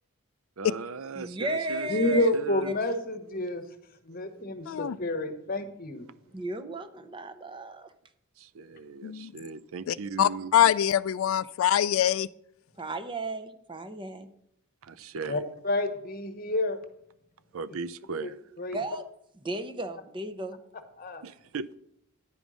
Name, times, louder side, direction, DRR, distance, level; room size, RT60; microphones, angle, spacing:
voice 1, 0.6-2.8 3.5-3.6 4.1-4.4 8.4-10.5 14.8-15.4 17.5-18.4 21.2-21.8, right 5 dB, 75° right, 0.5 m, -38 dB
voice 2, 1.2-2.3 2.7-2.8 6.3-7.9 12.8-14.3 18.7-19.0 19.4-20.6, right 2 dB, 20° right, 0.7 m, -35 dB
voice 3, 1.9-3.6 4.0-6.1 15.3-16.8 18.2-18.3 18.6-18.8 21.0-21.2, left 1 dB, 40° left, 1.1 m, -29 dB
voice 4, 4.7-5.0 9.0-9.3 9.9-12.3, left 10 dB, 70° left, 0.3 m, -24 dB
9.9 x 5.3 x 6.2 m
head